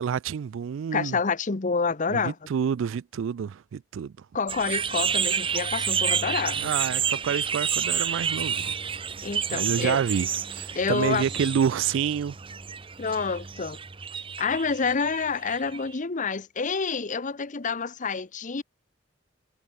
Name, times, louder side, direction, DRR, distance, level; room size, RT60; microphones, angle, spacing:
voice 1, 0.0-1.2 2.1-4.1 6.6-8.7 9.5-12.4, right 7 dB, 75° right, 0.3 m, -28 dB
voice 2, 0.9-2.3 4.3-6.7 9.2-10.0 10.7-11.2 13.0-13.8 14.4-18.6, left 5 dB, 40° left, 0.8 m, -28 dB
sound 1, 4.5-15.9, right 7 dB, 25° right, 0.7 m, -30 dB
head